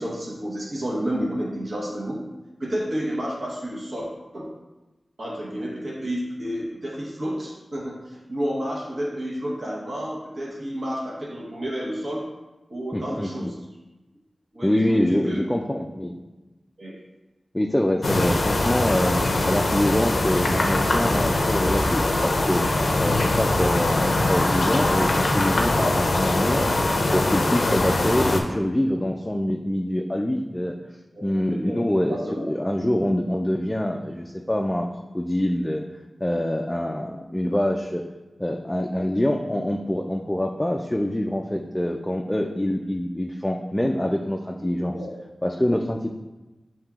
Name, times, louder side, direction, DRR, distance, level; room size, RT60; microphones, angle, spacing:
voice 1, 0.0-2.2 2.6-4.1 4.3-4.5 5.2-12.3 12.7-13.6 14.5-15.4 15.7-15.8 16.8-17.0 31.1-32.5 44.9-45.1, equal, 55° right, -5 dB, 0.9 m, -31 dB
voice 2, 12.9-13.3 14.6-16.1 17.5-19.2 19.5-22.6 23.0-26.7 27.1-30.7 31.2-35.8 36.2-38.0 38.4-45.0 45.4-46.1, left 1 dB, 15° left, 1 dB, 0.3 m, -25 dB
sound 1, 18.0-28.4, left 2 dB, 85° left, 0.5 m, -22 dB
7.0 x 2.9 x 2.4 m, 1.1 s
wide cardioid pair, 90°, 0 cm